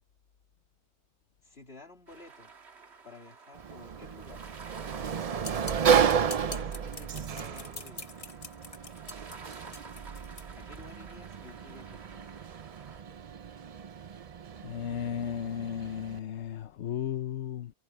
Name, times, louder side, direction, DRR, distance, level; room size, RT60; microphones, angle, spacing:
voice 1, 1.4-2.5 3.0-4.6 6.2-8.3 10.6-12.3, left 3 dB, 65° left, 3.6 m, -52 dB
sound 1, 2.1-13.0, right 4 dB, 75° right, 1.9 m, -51 dB
Sliding door, 3.5-16.2, right 7 dB, 45° right, 0.5 m, -32 dB
sound 2, 5.4-10.5, left 3 dB, 30° left, 1.4 m, -44 dB
voice 2, 14.6-17.7, left 9 dB, 90° left, 1.2 m, -34 dB
omnidirectional pair, 1.1 m